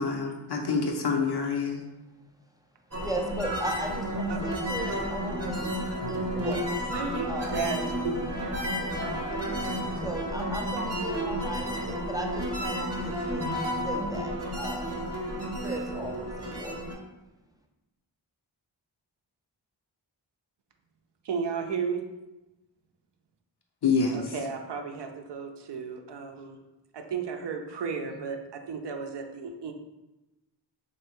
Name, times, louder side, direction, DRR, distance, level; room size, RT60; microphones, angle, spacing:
voice 1, 0.0-1.8 23.8-24.2, left 4 dB, 55° left, 0.6 m, -26 dB
sound 1, 2.9-16.9, equal, 30° right, 0.8 m, -31 dB
voice 2, 3.0-5.7 6.1-6.8 7.3-7.6 8.8-8.9 10.0-13.4 13.8-14.9 15.6-16.7, right 1 dB, 10° right, 0.4 m, -37 dB
voice 3, 4.3-4.6 6.9-8.7 21.2-22.1 24.1-26.6 26.9-29.7, right 5 dB, 60° right, 0.5 m, -34 dB
3.2 x 2.7 x 3.0 m
cardioid pair, 45°, 48 cm